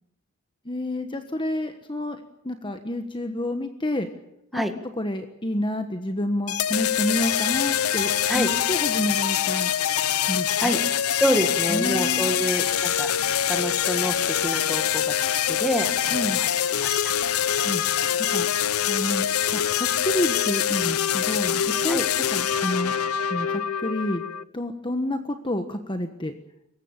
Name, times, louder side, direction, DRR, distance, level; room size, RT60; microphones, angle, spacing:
voice 1, 0.6-2.2 2.4-4.1 4.5-4.6 5.0-9.7 10.3-10.8 11.7-12.4 16.1-16.4 17.5-17.8 18.3-18.5 18.9-22.0 22.3-22.9 23.3-24.2 24.5-26.3, left 1 dB, 20° left, 7 dB, 1.3 m, -29 dB
sound 1, 6.5-24.4, left 9 dB, 85° left, 0.8 m, -24 dB
voice 2, 11.2-13.1 13.5-17.2 21.9-22.0, equal, ahead, 6 dB, 1.9 m, -28 dB
24.5 x 15.0 x 9.0 m, 0.80 s
head